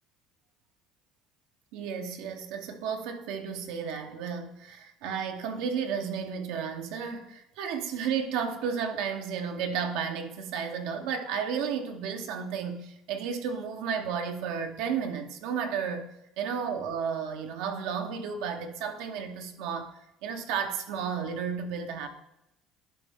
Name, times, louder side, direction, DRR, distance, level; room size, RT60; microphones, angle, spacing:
voice 1, 1.7-16.1 16.4-19.9 20.2-22.1, right 6 dB, 80° right, 5 dB, 0.9 m, -33 dB
11.5 x 4.6 x 3.6 m, 0.87 s
cardioid pair, 120°, 0 cm